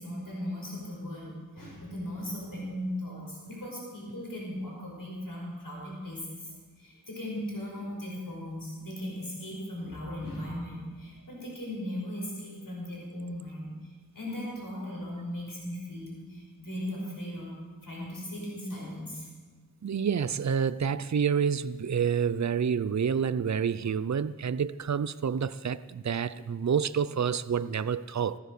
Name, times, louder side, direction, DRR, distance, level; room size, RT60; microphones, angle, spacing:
voice 1, 0.0-6.5 6.8-13.7 14.1-17.6 17.8-19.3, left 1 dB, 75° left, -3 dB, 5.5 m, -38 dB
voice 2, 19.8-28.4, right 7 dB, 55° right, 16 dB, 0.5 m, -28 dB
15.5 x 13.0 x 6.7 m, 1.4 s
wide cardioid pair, 50°, 34 cm